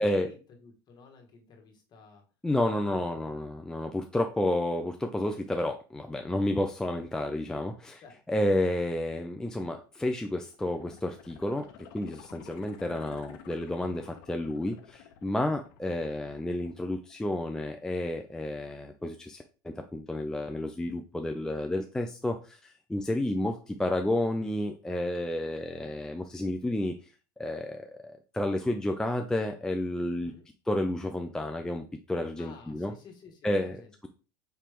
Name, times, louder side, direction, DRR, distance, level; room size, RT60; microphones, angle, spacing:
voice 1, 0.0-2.2 2.9-3.4 8.0-8.2 30.2-30.5 32.4-33.9, left 5 dB, 35° left, 2 dB, 1.5 m, -53 dB
voice 2, 2.4-8.0 8.3-11.7 11.9-27.0 27.4-30.3 30.7-32.9 33.4-33.8, left 1 dB, 5° left, 5 dB, 0.4 m, -31 dB
sound 1, 10.5-17.5 17.9-18.0, left 9 dB, 70° left, 0.7 m, -52 dB
4.5 x 2.9 x 3.5 m, 0.34 s
supercardioid pair, 105°, 12 cm